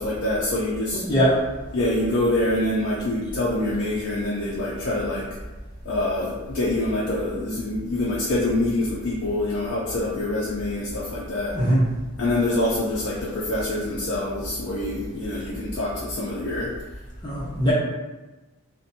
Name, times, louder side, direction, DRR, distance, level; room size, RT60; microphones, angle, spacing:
voice 1, 0.0-1.0 1.7-5.2 5.9-11.5 12.2-16.7, left 1 dB, 55° left, -7 dB, 0.4 m, -25 dB
voice 2, 0.9-1.4 11.5-11.8 17.2-17.7, equal, 20° left, -8 dB, 0.7 m, -21 dB
2.5 x 2.2 x 2.7 m, 1.1 s
head